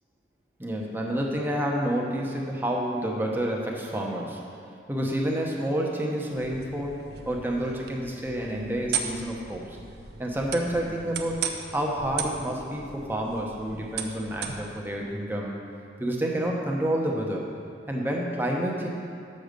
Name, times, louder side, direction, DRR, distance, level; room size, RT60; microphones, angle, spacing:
voice 1, 0.6-4.4 4.9-6.9 7.3-9.8 10.2-15.6 16.0-17.5 17.9-18.9, right 1 dB, 10° right, -1 dB, 0.8 m, -29 dB
sound 1, 6.3-14.9, right 7 dB, 65° right, 0.6 m, -37 dB
7.0 x 6.6 x 5.1 m, 2.4 s
head